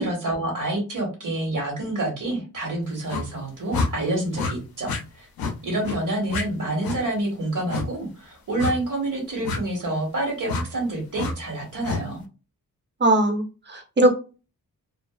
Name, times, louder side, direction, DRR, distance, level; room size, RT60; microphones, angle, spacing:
voice 1, 0.0-5.3 5.6-12.2, right 2 dB, 60° right, 0 dB, 1.3 m, -28 dB
sound 1, 3.1-3.3 3.7-3.9 4.3-4.5 4.8-5.0 5.4-5.5 5.8-6.0 6.3-6.4 6.8-7.0 7.7-7.9 8.6-8.8 9.4-9.6 10.5-10.6 11.2-11.3 11.8-12.0, left 4 dB, 80° left, 0.5 m, -27 dB
voice 2, 13.0-13.4 13.7-14.1, right 1 dB, 30° right, 5 dB, 0.6 m, -19 dB
2.4 x 2.3 x 2.3 m, 0.32 s
cardioid pair, 75°, 35 cm